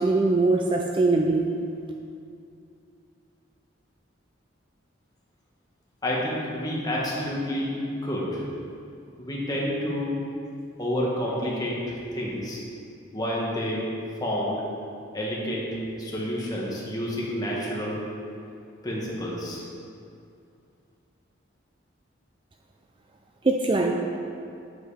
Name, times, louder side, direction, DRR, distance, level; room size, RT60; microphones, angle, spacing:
voice 1, 0.0-1.5 23.4-23.9, right 3 dB, 25° right, 2 dB, 0.4 m, -22 dB
voice 2, 6.0-8.4 9.2-10.1 10.8-12.6 13.1-13.9 14.2-14.6 15.1-18.0 18.8-19.6, equal, 20° left, -5 dB, 1.7 m, -29 dB
8.2 x 7.7 x 5.0 m, 2.5 s
head